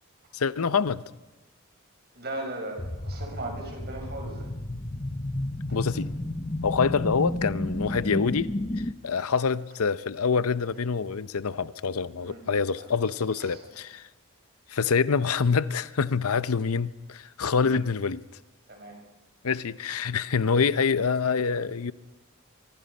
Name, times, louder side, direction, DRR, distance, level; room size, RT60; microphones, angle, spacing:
voice 1, 0.3-1.0 5.7-6.1 6.6-8.5 9.0-14.1 14.7-18.2 19.4-21.9, left 5 dB, 80° left, 0.7 m, -26 dB
voice 2, 2.1-4.5 5.7-5.8 12.2-12.4 12.8-13.0 13.4-13.6 17.5-17.6 18.7-19.0, right 2 dB, 45° right, 5.8 m, -38 dB
sound 1, 2.8-8.9, left 1 dB, 25° left, 1.0 m, -32 dB
24.5 x 24.0 x 5.4 m
head